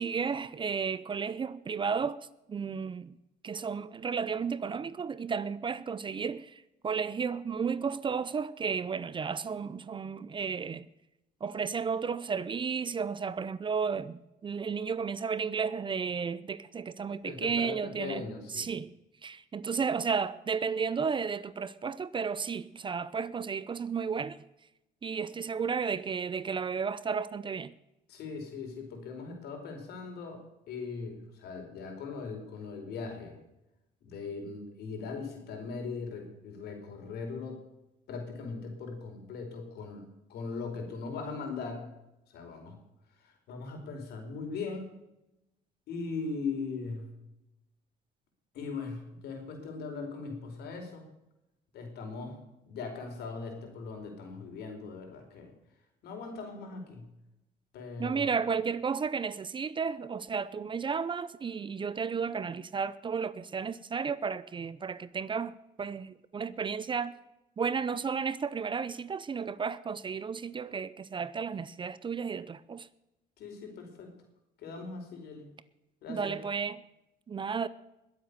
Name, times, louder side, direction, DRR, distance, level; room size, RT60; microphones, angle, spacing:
voice 1, 0.0-2.2 2.5-3.1 3.4-10.9 11.4-18.2 18.5-18.9 19.2-24.4 25.0-27.7 58.0-65.5 65.8-67.1 67.6-72.9 76.1-76.8 77.3-77.7, right 6 dB, 30° right, 0.7 m, -33 dB
voice 2, 17.2-18.7 28.1-33.4 34.0-37.6 38.1-41.9 42.3-42.8 43.2-44.9 45.9-47.1 48.5-51.0 51.7-52.4 52.7-55.5 56.0-57.1 57.7-58.3 73.4-74.1 74.6-75.5 76.0-76.4, left 4 dB, 75° left, 4.7 m, -39 dB
21.0 x 8.0 x 6.9 m
cardioid pair, 110°, 17 cm